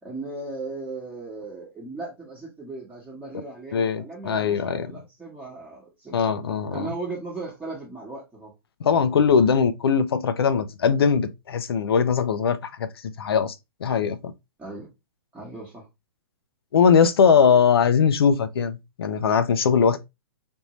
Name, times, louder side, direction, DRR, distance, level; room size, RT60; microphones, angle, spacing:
voice 1, 0.0-6.1 6.7-8.5 14.6-14.9 15.3-15.9, right 3 dB, 10° right, 1.1 m, -37 dB
voice 2, 3.7-4.9 6.1-6.9 8.8-13.5 13.8-14.3 16.7-20.1, left 6 dB, 85° left, 0.6 m, -21 dB
3.6 x 2.6 x 2.9 m
hypercardioid pair, 140°, 12 cm